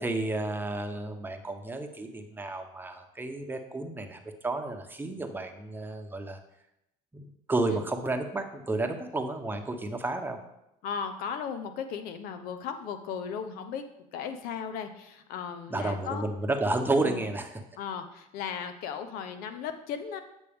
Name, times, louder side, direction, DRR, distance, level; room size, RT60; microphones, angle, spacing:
voice 1, 0.0-6.4 7.1-10.4 15.7-17.6, right 2 dB, 15° right, 5 dB, 0.9 m, -31 dB
voice 2, 10.8-13.8 14.1-16.3 17.0-17.2 17.8-20.2, left 7 dB, 80° left, 8 dB, 0.8 m, -36 dB
8.2 x 6.2 x 3.6 m, 0.84 s
cardioid pair, 100°, 15 cm